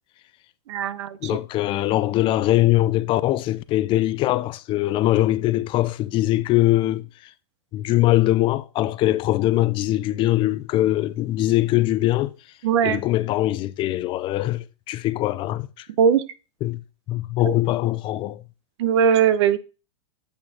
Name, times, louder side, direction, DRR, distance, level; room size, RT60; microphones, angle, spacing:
voice 1, 0.7-1.4 12.6-13.0 16.0-16.2 17.4-17.5 18.8-19.6, right 8 dB, 70° right, 0.7 m, -20 dB
voice 2, 1.2-7.3 7.7-12.3 12.8-15.9 16.6-16.8 17.1-18.4, left 15 dB, 35° left, 0.4 m, -22 dB
8.6 x 6.4 x 2.8 m
hypercardioid pair, 120°, 15 cm